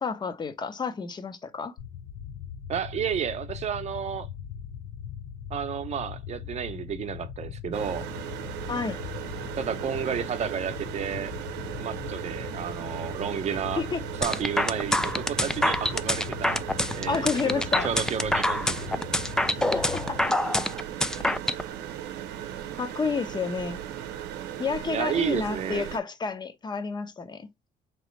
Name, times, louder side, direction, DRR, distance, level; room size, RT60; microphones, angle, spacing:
voice 1, 0.0-1.8 8.7-9.0 13.8-14.0 17.1-17.9 19.7-20.2 21.2-21.3 22.8-23.8 24.6-27.5, left 5 dB, 25° left, 0.7 m, -30 dB
sound 1, 1.8-20.3, left 8 dB, 70° left, 0.6 m, -40 dB
voice 2, 2.7-4.3 5.5-8.1 9.5-11.3 11.8-13.9 14.2-16.6 16.9-19.0 24.9-25.8, right 8 dB, 40° right, 0.7 m, -31 dB
sound 2, 7.7-26.0, right 10 dB, 90° right, 0.6 m, -37 dB
sound 3, 14.2-21.6, left 1 dB, 5° left, 0.3 m, -26 dB
3.8 x 3.0 x 3.1 m
cardioid pair, 110°, 17 cm